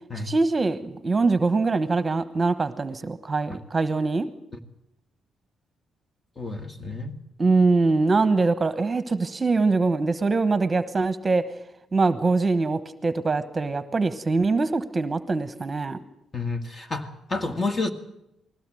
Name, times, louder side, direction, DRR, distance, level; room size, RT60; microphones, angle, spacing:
voice 1, 0.2-4.3 7.4-11.4 11.9-16.0, right 3 dB, 25° right, 12 dB, 1.1 m, -23 dB
voice 2, 6.4-7.2 16.3-17.9, left 3 dB, 30° left, 7 dB, 1.9 m, -29 dB
20.5 x 16.0 x 7.8 m, 0.85 s
cardioid pair, 90°, 0 cm